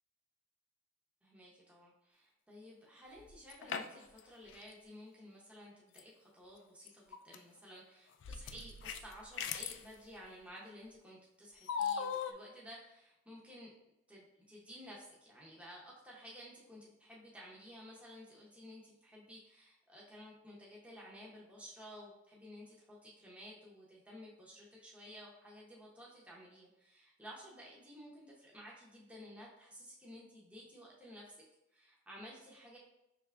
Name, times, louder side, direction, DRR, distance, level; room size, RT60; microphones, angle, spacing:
voice 1, 1.2-13.7 14.1-31.3 31.7-32.8, equal, 5° right, -5 dB, 0.7 m, -54 dB
sound 1, 3.2-4.2 4.5-4.6 6.0-6.1 6.9-7.4 8.2-9.8 11.7-12.3, left 7 dB, 70° left, 0.3 m, -39 dB
5.2 x 3.3 x 2.4 m, 0.88 s
head